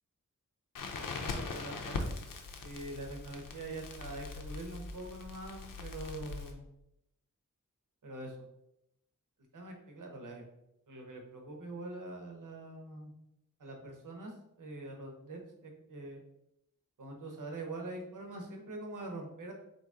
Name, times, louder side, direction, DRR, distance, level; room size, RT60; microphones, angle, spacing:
Crackle, 0.8-6.5, left 3 dB, 80° left, 0.6 m, -41 dB
voice 1, 1.2-2.2 2.6-6.6 8.0-8.4 9.5-10.4 10.9-13.1 13.6-16.2 17.0-19.5, right 2 dB, 70° right, 2 dB, 1.0 m, -44 dB
4.0 x 2.9 x 3.6 m, 0.83 s
wide cardioid pair, 95°, 32 cm